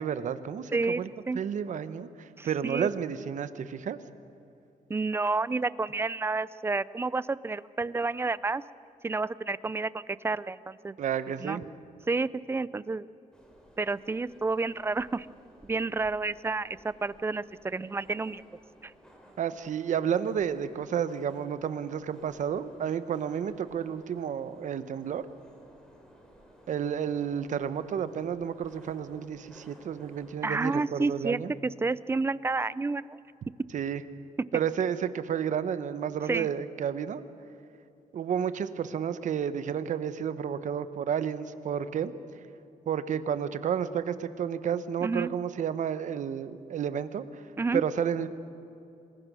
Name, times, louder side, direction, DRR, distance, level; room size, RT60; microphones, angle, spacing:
voice 1, 0.0-1.1 1.3-4.0 11.0-11.6 19.4-25.2 26.7-31.5 33.7-34.0 34.5-37.2 38.1-42.1 42.9-47.4 47.7-48.3, right 8 dB, 65° right, 12 dB, 1.0 m, -31 dB
voice 2, 0.7-1.4 2.4-2.9 4.9-8.6 9.0-10.9 11.4-11.6 12.1-13.1 13.8-15.3 15.6-18.4 18.8-18.9 30.4-33.2 36.3-36.5 45.0-45.3 47.6-47.8, right 3 dB, 15° right, 18 dB, 0.4 m, -30 dB
sound 1, 13.3-30.5, equal, 5° left, 3.6 m, -56 dB
27.0 x 21.0 x 6.2 m, 2.7 s
wide cardioid pair, 155°, 14 cm